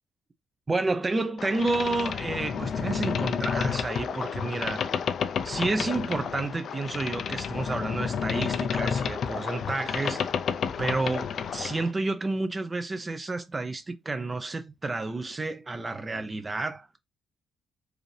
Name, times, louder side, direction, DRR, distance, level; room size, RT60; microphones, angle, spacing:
voice 1, 0.7-4.9 5.4-10.3 10.8-17.0, right 3 dB, 25° right, 0.5 m, -30 dB
Boat Water vehicle, 1.4-11.9, left 7 dB, 60° left, 0.4 m, -30 dB
4.7 x 2.6 x 3.2 m
cardioid pair, 90°, 0 cm